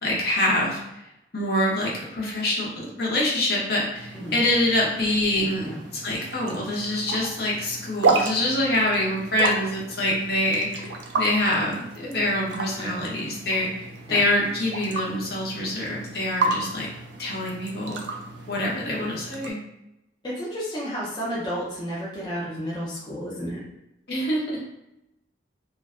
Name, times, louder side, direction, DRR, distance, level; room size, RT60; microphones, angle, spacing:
voice 1, 0.0-1.0 1.3-16.9 17.2-18.0 18.5-19.6 24.1-24.6, left 1 dB, 60° left, -4 dB, 0.7 m, -25 dB
sound 1, 3.9-19.5, right 3 dB, 85° right, 0.4 m, -32 dB
voice 2, 20.2-23.6, equal, 25° left, -6 dB, 0.5 m, -31 dB
2.5 x 2.2 x 2.3 m, 0.89 s
head